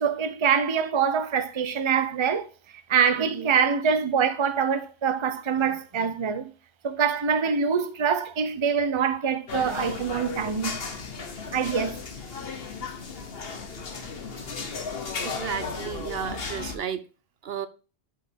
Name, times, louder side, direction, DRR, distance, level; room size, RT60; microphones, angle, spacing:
voice 1, 0.0-2.5 2.9-6.5 6.8-10.8 11.5-12.0, right 6 dB, 30° right, 0.7 m, -24 dB
voice 2, 3.2-3.5 15.2-17.0 17.4-17.7, right 8 dB, 70° right, 0.9 m, -33 dB
sound 1, 9.5-16.8, left 4 dB, 65° left, 1.4 m, -35 dB
11.5 x 5.2 x 3.6 m
omnidirectional pair, 1.1 m